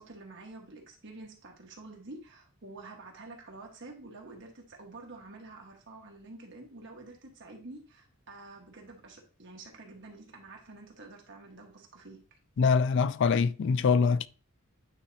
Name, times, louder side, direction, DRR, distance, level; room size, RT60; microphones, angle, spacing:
voice 1, 0.0-12.2, right 2 dB, 55° right, 1.5 m, -48 dB
voice 2, 12.6-14.3, left 5 dB, 55° left, 0.3 m, -24 dB
9.0 x 4.2 x 2.8 m
head